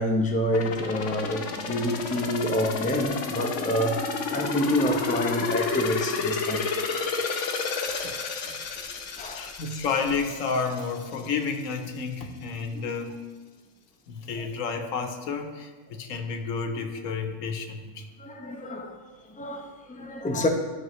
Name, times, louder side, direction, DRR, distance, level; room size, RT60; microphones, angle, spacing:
voice 1, 0.0-6.7 9.2-9.5 12.7-12.8 18.2-19.0 19.3-20.5, left 1 dB, 10° left, 1 dB, 0.6 m, -27 dB
sound 1, 0.5-11.3 11.7-11.8, left 4 dB, 75° left, 1.1 m, -31 dB
voice 2, 9.3-13.2 14.1-18.1, left 5 dB, 90° left, 6 dB, 1.2 m, -31 dB
13.5 x 6.3 x 3.1 m, 1.4 s
omnidirectional pair, 1.3 m